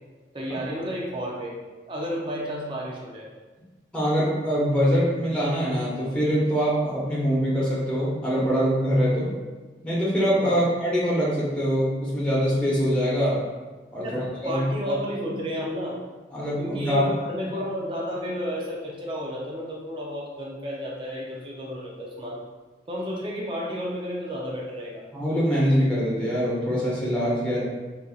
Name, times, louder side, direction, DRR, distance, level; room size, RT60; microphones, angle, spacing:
voice 1, 0.3-1.5 1.9-3.3 10.4-10.6 14.0-16.0 16.6-22.4 22.9-25.0, equal, 25° right, -4 dB, 0.5 m, -32 dB
voice 2, 3.9-9.3 9.8-13.4 13.9-15.0 16.3-17.1 25.1-27.6, equal, 5° left, -8 dB, 0.9 m, -24 dB
4.2 x 2.6 x 2.4 m, 1.3 s
head